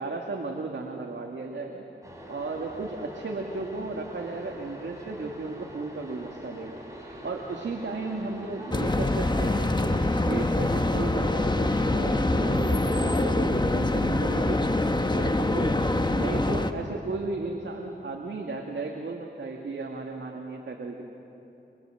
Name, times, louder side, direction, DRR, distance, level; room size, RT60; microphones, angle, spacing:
voice 1, 0.0-1.8 2.3-6.8 7.2-14.6 15.1-15.8 16.1-21.0, right 3 dB, 75° right, 1 dB, 2.1 m, -35 dB
sound 1, 2.0-13.2, equal, 15° right, 6.4 m, -43 dB
sound 2, 8.7-16.7, left 2 dB, 25° left, 1.3 m, -25 dB
25.0 x 24.5 x 7.8 m, 2.8 s
cardioid pair, 55°, 19 cm